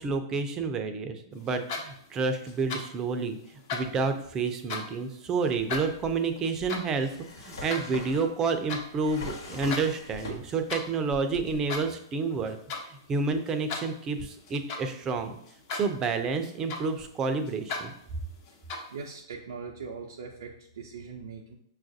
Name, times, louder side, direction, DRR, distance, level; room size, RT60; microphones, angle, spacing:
voice 1, 0.0-3.4 3.7-7.1 7.4-12.6 13.1-15.4 15.7-17.9, right 4 dB, 25° right, 8 dB, 0.5 m, -29 dB
sound 1, 1.5-2.2 2.5-3.0 3.4-5.0 5.5-8.9 9.3-9.9 10.2-10.9 11.4-12.0 12.3-12.9 13.2-15.0 15.4-16.0 16.3-17.1 17.4-17.9 18.4-19.0, left 4 dB, 50° left, 0.9 m, -37 dB
Drawer open or close, 5.6-10.8 11.1-11.9, left 1 dB, 75° left, 1.2 m, -42 dB
voice 2, 18.9-21.6, right 5 dB, 75° right, -1 dB, 0.5 m, -41 dB
5.6 x 2.4 x 2.6 m, 0.67 s
hypercardioid pair, 115°, 2 cm